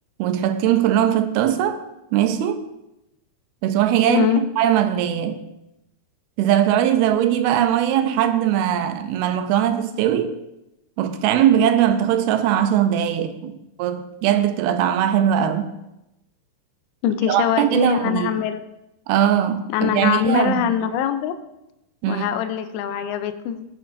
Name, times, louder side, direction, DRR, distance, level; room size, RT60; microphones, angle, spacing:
voice 1, 0.2-1.8 2.1-2.7 3.6-5.4 6.4-10.4 11.0-15.7 17.3-18.4 19.1-20.7 22.0-22.3, right 10 dB, 85° right, 2.5 m, -20 dB
voice 2, 4.1-4.4 17.0-18.6 19.7-21.4 22.1-23.7, left 9 dB, 85° left, 2.6 m, -23 dB
16.5 x 8.6 x 2.6 m
omnidirectional pair, 4.5 m